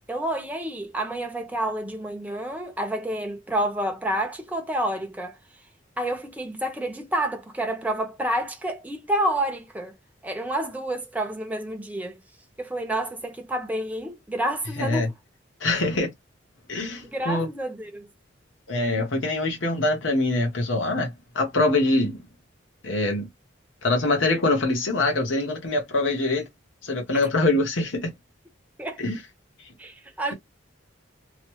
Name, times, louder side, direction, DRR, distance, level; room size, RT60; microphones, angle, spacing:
voice 1, 0.1-5.3 6.0-9.9 10.2-12.2 12.6-15.1 17.1-18.1 28.8-29.0 29.8-30.3, right 1 dB, 10° right, 0.7 m, -29 dB
voice 2, 14.8-15.1 15.6-16.1 16.7-17.5 18.7-22.2 22.8-23.3 23.8-26.5 26.8-28.1 29.0-29.2, left 2 dB, 85° left, 1.1 m, -24 dB
3.1 x 2.0 x 3.0 m
head